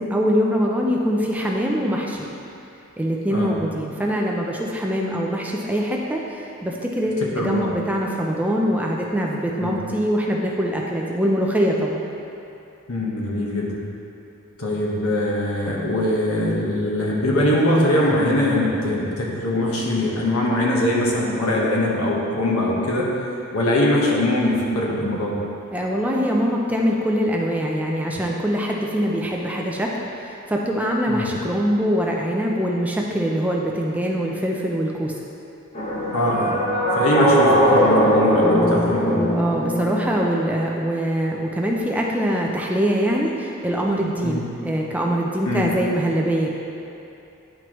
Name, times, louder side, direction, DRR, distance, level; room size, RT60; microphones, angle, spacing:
voice 1, 0.0-2.2 3.0-12.0 25.7-35.2 39.3-46.5, equal, 5° right, -2 dB, 0.4 m, -23 dB
voice 2, 7.3-7.7 9.6-9.7 12.9-13.8 14.6-23.1 23.5-25.4 31.1-31.3 36.1-36.6 37.0-39.2 44.2-44.4 45.5-45.7, left 1 dB, 80° left, -3 dB, 1.2 m, -22 dB
sound 1, 35.8-40.5, equal, 30° left, 0.8 m, -20 dB
10.5 x 4.6 x 3.0 m, 2.8 s
head